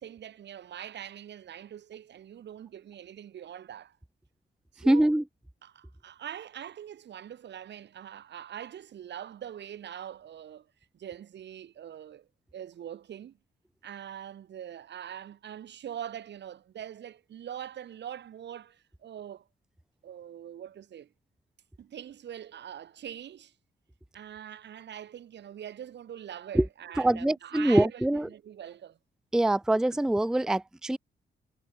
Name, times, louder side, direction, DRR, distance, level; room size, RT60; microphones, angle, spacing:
voice 1, 0.0-4.0 4.7-5.1 5.6-10.7 10.9-13.4 13.8-19.5 20.0-21.1 21.8-23.5 24.1-29.0, right 10 dB, 75° right, 2.5 m, -43 dB
voice 2, 4.9-5.2 26.5-26.6 27.0-28.3 29.3-31.0, right 1 dB, 5° right, 0.5 m, -24 dB
wide cardioid pair, 125°, 18 cm